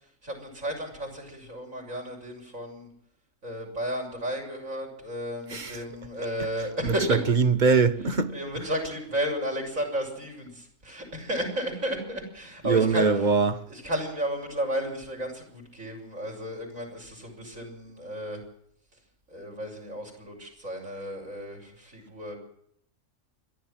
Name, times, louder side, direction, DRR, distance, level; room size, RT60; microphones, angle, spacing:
voice 1, 0.2-2.9 3.4-7.2 8.3-13.1 13.7-18.4 19.3-22.3, equal, 80° right, 7.3 m, -33 dB
voice 2, 6.8-8.3 12.6-13.6, right 5 dB, 35° right, 1.2 m, -22 dB
29.0 x 12.0 x 7.6 m
omnidirectional pair, 1.4 m